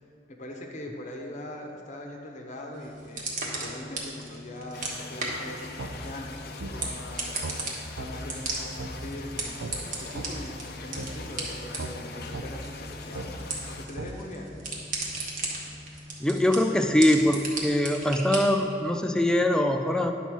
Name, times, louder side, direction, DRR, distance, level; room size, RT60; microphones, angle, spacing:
voice 1, 0.3-3.3 3.6-7.2 7.6-14.5, left 1 dB, 40° left, 1 dB, 0.9 m, -41 dB
sound 1, 2.7-18.7, right 2 dB, 45° right, 1.3 m, -37 dB
sound 2, 4.7-13.9, left 4 dB, 55° left, 0.6 m, -43 dB
sound 3, 5.8-5.9 6.6-6.7 7.4-7.6 8.0-8.1 8.8-8.9 9.6-9.7 10.1-10.3 11.0-11.1 11.8-11.9 12.3-12.5 13.1-13.3 14.0-14.1, right 3 dB, 85° right, 0.7 m, -36 dB
voice 2, 16.2-20.1, left 1 dB, 5° left, 5 dB, 0.4 m, -23 dB
10.0 x 4.1 x 6.1 m, 2.5 s
head